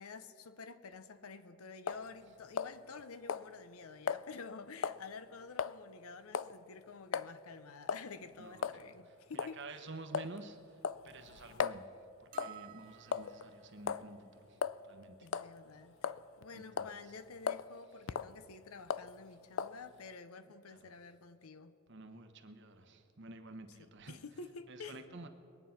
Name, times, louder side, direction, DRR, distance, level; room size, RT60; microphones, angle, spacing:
voice 1, 0.0-9.8 15.2-16.1 16.4-21.7 24.1-25.0, left 4 dB, 80° left, 0.7 m, -50 dB
sound 1, 1.9-2.1 2.6-3.0 3.3-3.5 4.1-4.2 4.8-5.0 5.6-5.8 6.3-6.6 7.1-7.3 7.9-8.1 8.6-8.8 9.4-9.6 10.1-10.4 10.8-11.8 12.4-12.6 13.1-13.5 13.9-14.1 14.6-14.8 15.3-15.5 16.0-16.4 16.8-17.0 17.5-17.7 18.1-18.3 18.9-19.1 19.6-19.8, left 7 dB, 60° left, 0.4 m, -36 dB
voice 2, 8.4-15.3 16.5-17.1 18.0-18.1 20.7-20.9 21.9-24.2 24.7-25.3, right 2 dB, 55° right, 1.0 m, -51 dB
sound 2, 12.3-13.7, right 12 dB, 35° right, 0.5 m, -53 dB
22.0 x 9.1 x 5.8 m
head